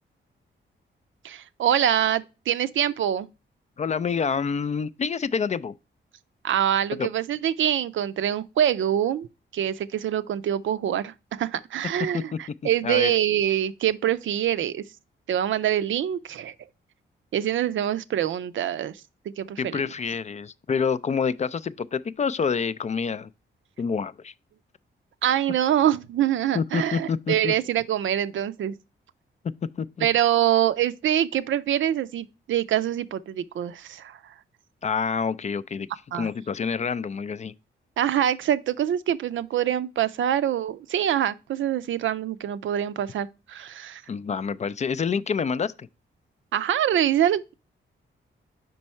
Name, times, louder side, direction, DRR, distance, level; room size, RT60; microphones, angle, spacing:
voice 1, 1.2-3.3 6.4-9.3 9.5-14.8 15.3-16.5 17.3-19.0 19.4-19.8 25.2-28.7 30.0-34.2 36.1-36.3 38.0-44.0 46.5-47.5, right 10 dB, 75° right, 0.5 m, -25 dB
voice 2, 3.8-5.7 7.0-7.1 12.1-12.4 12.8-13.1 19.6-23.3 23.8-24.3 26.5-27.5 29.8-30.1 34.8-35.9 36.1-37.5 44.1-45.9, left 6 dB, 35° left, 0.4 m, -27 dB
5.3 x 4.6 x 4.2 m
cardioid pair, 85°, 20 cm